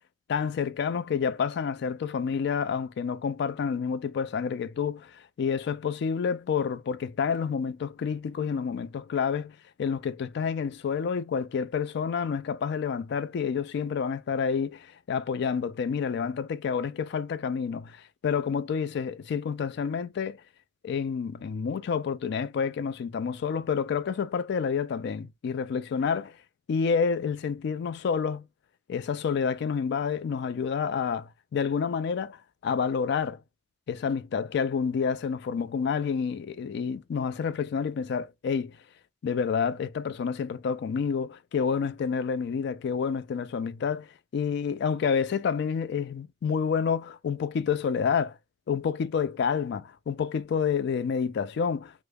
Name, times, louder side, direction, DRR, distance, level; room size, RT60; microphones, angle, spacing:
voice 1, 0.3-20.4 20.8-26.3 26.7-28.5 28.9-32.4 32.6-33.4 33.9-38.8 39.2-44.1 44.3-48.4 48.7-51.9, left 6 dB, 60° left, 0.3 m, -29 dB
3.1 x 2.0 x 3.3 m
head